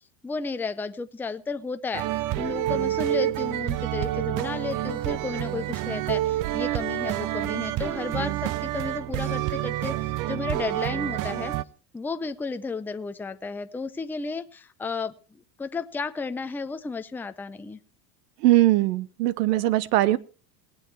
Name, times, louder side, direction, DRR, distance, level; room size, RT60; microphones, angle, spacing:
voice 1, 0.2-11.5 11.9-17.8, left 4 dB, 5° left, 9 dB, 0.5 m, -33 dB
sound 1, 1.9-11.6, right 14 dB, 40° right, 0.6 m, -28 dB
voice 2, 18.4-20.2, right 15 dB, 70° right, 20 dB, 1.0 m, -20 dB
19.0 x 8.1 x 4.6 m, 0.38 s
supercardioid pair, 100°, 49 cm